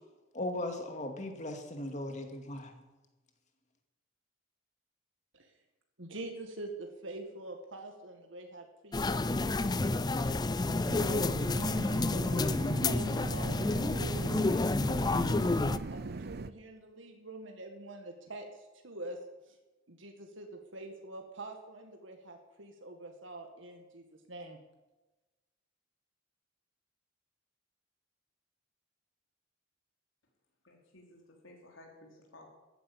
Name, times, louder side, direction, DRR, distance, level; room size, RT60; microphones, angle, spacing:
voice 1, 0.3-2.7, left 1 dB, 35° left, 4 dB, 2.3 m, -37 dB
voice 2, 6.0-10.6 11.0-15.6 15.9-19.2 19.5-19.6 19.9-24.6, right 2 dB, 70° right, 3 dB, 2.0 m, -46 dB
sound 1, 8.9-15.8, left 2 dB, 20° left, 0.5 m, -30 dB
sound 2, 10.9-16.5, right 3 dB, 50° right, 0.6 m, -40 dB
voice 3, 30.6-32.5, left 1 dB, 80° left, 0 dB, 3.6 m, -56 dB
14.0 x 10.0 x 8.8 m, 1.1 s
head